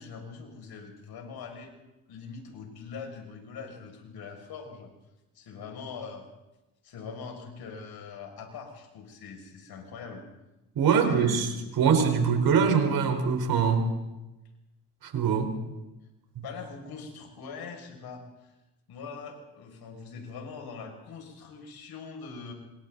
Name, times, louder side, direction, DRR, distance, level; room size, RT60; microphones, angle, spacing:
voice 1, 0.0-1.7 2.1-4.9 5.3-6.3 6.8-10.3 11.1-11.6 12.2-12.3 16.4-18.5 18.9-22.5, left 5 dB, 65° left, 2 dB, 6.9 m, -42 dB
voice 2, 10.7-13.9 15.0-15.6, right 6 dB, 60° right, 5 dB, 4.7 m, -23 dB
28.0 x 26.5 x 4.2 m, 1.0 s
supercardioid pair, 70°, 40 cm